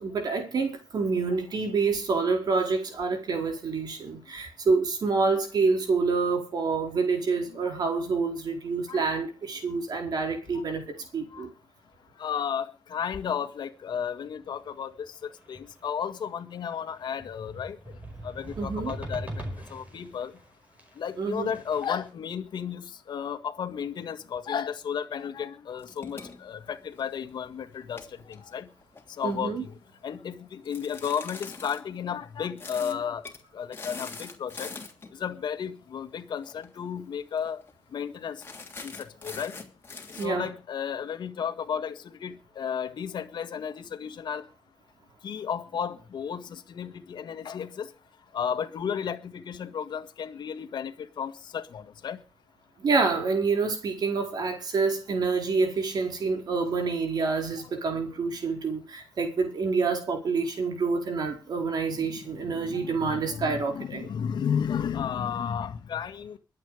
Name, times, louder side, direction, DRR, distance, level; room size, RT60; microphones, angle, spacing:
voice 1, 0.0-11.5 18.6-18.9 21.2-21.5 29.2-29.6 40.2-40.5 52.8-64.1, right 4 dB, 60° right, 4.7 m, -27 dB
voice 2, 8.9-9.3 10.5-10.6 11.3-11.5 12.2-20.4 21.0-28.7 29.1-29.8 30.0-33.3 33.5-34.8 35.1-37.6 37.9-38.4 38.8-39.6 40.1-44.5 45.2-47.9 48.3-52.2 57.6-57.7 61.9-66.4, left 7 dB, 75° left, 1.9 m, -33 dB
sound 1, 14.6-14.9 15.3-16.2 16.6-22.1, right 1 dB, 20° right, 5.1 m, -41 dB
sound 2, 25.8-27.3 27.8-29.4 30.6-31.8 32.6-33.0 33.2-33.4 33.7-35.1 36.4-36.7 37.0-37.1 37.4-37.7 38.4-40.3, left 4 dB, 30° left, 3.2 m, -43 dB
23.0 x 8.7 x 5.1 m
wide cardioid pair, 135°, 8 cm